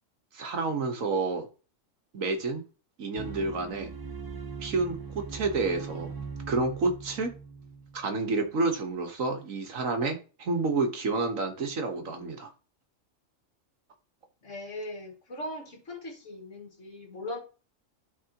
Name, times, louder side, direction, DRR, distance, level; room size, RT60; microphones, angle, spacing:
voice 1, 0.3-1.5 2.1-2.6 3.0-3.9 4.6-6.1 6.5-7.3 7.9-12.5, right 3 dB, 80° right, 1.7 m, -29 dB
sound 1, 3.2-8.5, right 5 dB, 20° right, 0.7 m, -41 dB
voice 2, 14.4-17.4, left 1 dB, 65° left, 2.2 m, -39 dB
12.5 x 4.3 x 2.9 m
omnidirectional pair, 1.4 m